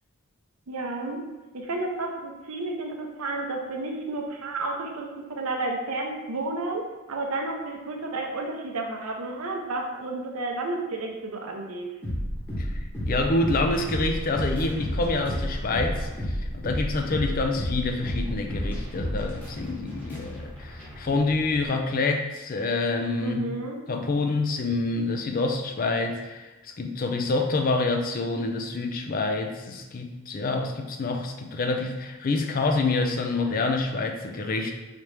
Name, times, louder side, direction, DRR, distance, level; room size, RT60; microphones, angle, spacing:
voice 1, 0.7-1.2 1.5-11.9 23.2-23.8, right 2 dB, 75° right, 1 dB, 0.7 m, -31 dB
sound 1, 12.0-21.7, equal, 10° left, 1.1 m, -31 dB
voice 2, 12.6-23.5 23.9-34.7, left 3 dB, 40° left, 3 dB, 0.4 m, -27 dB
4.9 x 2.9 x 3.3 m, 1.1 s
head